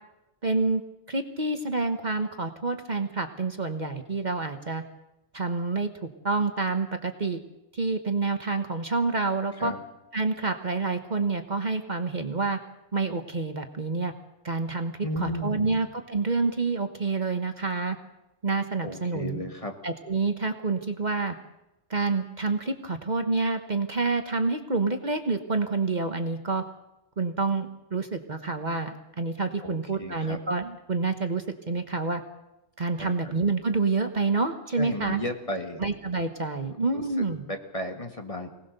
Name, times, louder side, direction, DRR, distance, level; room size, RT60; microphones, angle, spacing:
voice 1, 0.4-0.8 1.1-4.8 5.3-7.4 7.7-9.7 10.1-12.6 12.9-14.1 14.4-14.9 15.2-18.0 18.4-19.4 19.8-21.3 21.9-26.6 27.2-27.7 27.9-32.2 32.8-35.2 35.8-37.4, right 3 dB, 40° right, 7 dB, 1.3 m, -28 dB
voice 2, 15.0-15.8 18.8-19.8 29.6-30.4 33.0-33.1 34.8-35.8 36.7-38.5, left 1 dB, 30° left, 4 dB, 1.9 m, -34 dB
24.5 x 18.5 x 6.7 m, 0.93 s
omnidirectional pair, 1.2 m